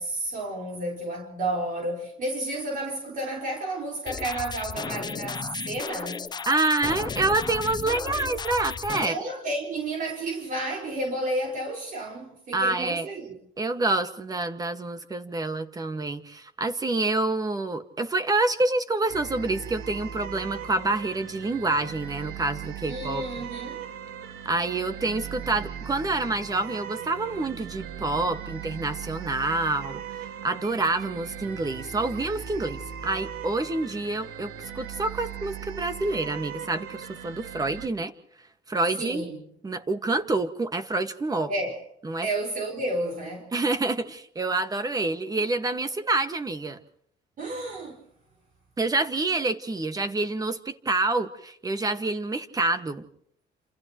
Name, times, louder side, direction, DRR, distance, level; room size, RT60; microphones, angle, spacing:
voice 1, 0.0-6.3 9.0-13.4 22.9-23.8 39.0-39.5 41.5-41.8 42.2-43.5 47.4-48.0, right 1 dB, 55° right, 5.1 m, -31 dB
sound 1, 4.1-9.1, left 5 dB, 25° left, 0.7 m, -34 dB
voice 2, 6.5-9.2 12.5-13.1 13.6-23.2 24.5-38.1 38.7-39.2 39.6-41.5 42.0-42.3 43.5-46.8 48.8-53.0, right 2 dB, 20° right, 1.8 m, -27 dB
sound 2, 19.1-37.9, right 8 dB, 85° right, 1.9 m, -39 dB
29.5 x 28.0 x 3.1 m
cardioid pair, 110°, 17 cm